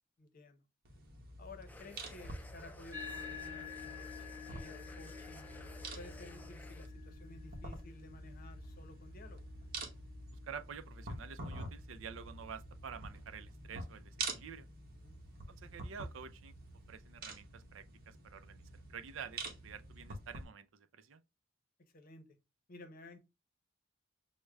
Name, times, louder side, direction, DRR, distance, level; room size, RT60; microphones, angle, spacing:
voice 1, 0.2-0.6 1.4-5.5 5.9-9.5 14.9-15.2 21.8-22.3 22.7-23.2, left 2 dB, 50° left, 0.7 m, -54 dB
sound 1, 0.9-20.4, right 2 dB, 50° right, 0.9 m, -47 dB
sound 2, 1.7-6.9, left 2 dB, 10° left, 0.4 m, -55 dB
sound 3, 2.9-11.7, left 6 dB, 20° right, 1.5 m, -51 dB
voice 2, 10.5-14.7 15.5-16.5 16.9-18.6 18.9-21.2, right 7 dB, 85° right, 0.4 m, -49 dB
6.3 x 2.1 x 2.2 m
head